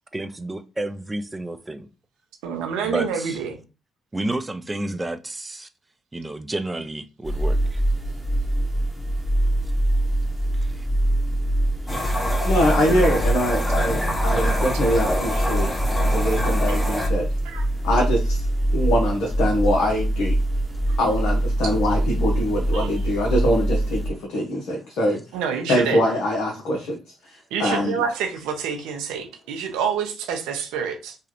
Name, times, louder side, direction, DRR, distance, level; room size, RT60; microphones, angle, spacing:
voice 1, 0.0-1.9 2.8-3.4 4.1-5.7 6.1-7.8 10.8-10.9, right 1 dB, 20° right, 0.5 m, -30 dB
voice 2, 2.4-3.6 17.4-17.7 22.7-22.9 25.3-26.0 27.5-31.2, right 7 dB, 75° right, 0.7 m, -27 dB
sound 1, 7.2-24.1, right 1 dB, ahead, 1.0 m, -23 dB
sound 2, 11.9-17.1, left 1 dB, 20° left, 1.0 m, -28 dB
voice 3, 12.4-15.7 16.0-17.3 17.8-18.4 18.7-20.4 21.0-25.2 25.7-27.0 27.6-28.0, equal, 70° left, 0.8 m, -23 dB
3.1 x 2.3 x 3.0 m
hypercardioid pair, 50°, 0 cm